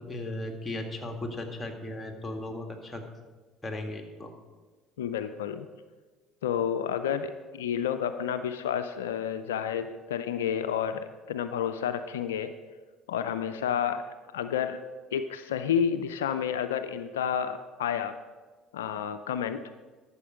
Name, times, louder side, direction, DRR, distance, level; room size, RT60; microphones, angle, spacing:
voice 1, 0.0-3.1 3.6-4.3, left 1 dB, 15° left, 3 dB, 2.0 m, -36 dB
voice 2, 5.0-5.7 6.4-12.5 13.1-14.0 14.3-14.8 15.1-18.2 18.7-19.6, left 8 dB, 80° left, 10 dB, 0.4 m, -30 dB
12.5 x 7.1 x 5.0 m, 1.3 s
hypercardioid pair, 60°, 0 cm